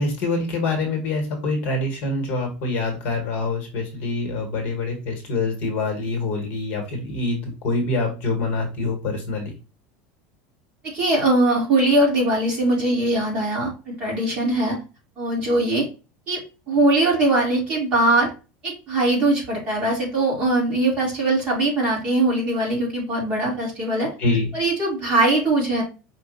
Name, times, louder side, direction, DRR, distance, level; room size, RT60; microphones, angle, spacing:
voice 1, 0.0-9.5 24.2-24.5, left 3 dB, 40° left, 2 dB, 1.4 m, -25 dB
voice 2, 10.9-14.8 15.2-15.9 16.3-16.4 16.7-18.3 18.6-24.1 24.5-25.8, right 2 dB, 25° right, -3 dB, 2.1 m, -21 dB
5.1 x 2.6 x 3.8 m, 0.31 s
cardioid pair, 180°, 5 cm